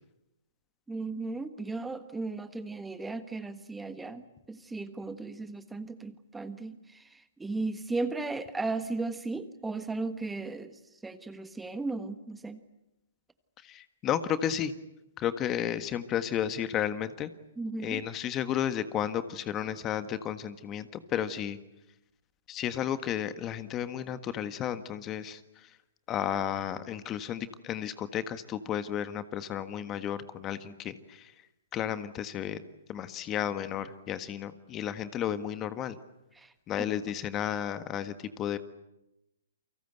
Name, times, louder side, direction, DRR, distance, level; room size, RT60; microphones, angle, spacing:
voice 1, 0.9-12.6 17.6-18.0 36.3-36.5, right 3 dB, 5° right, 10 dB, 1.4 m, -36 dB
voice 2, 13.6-14.7 15.2-17.3 17.8-21.6 22.5-25.7 26.1-31.3 31.7-32.6 32.9-36.0 36.7-38.6, left 10 dB, 25° left, 12 dB, 1.6 m, -33 dB
29.5 x 24.5 x 8.2 m, 0.92 s
figure-of-eight pair, 125°, 0 cm